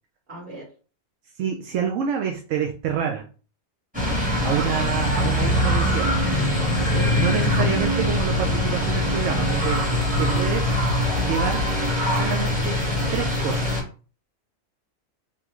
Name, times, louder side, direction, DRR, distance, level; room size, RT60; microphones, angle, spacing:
voice 1, 0.3-0.7 4.1-4.7 6.8-7.2 10.3-10.4, right 2 dB, 40° right, -6 dB, 2.0 m, -37 dB
voice 2, 1.3-3.3 4.4-6.3 7.2-9.9 10.2-10.7 11.3-11.7 12.1-12.8 13.1-13.7, right 8 dB, 70° right, 2 dB, 0.9 m, -27 dB
sound 1, 3.9-13.8, left 1 dB, 5° right, 1.2 m, -22 dB
3.6 x 3.0 x 3.0 m, 0.38 s
omnidirectional pair, 1.4 m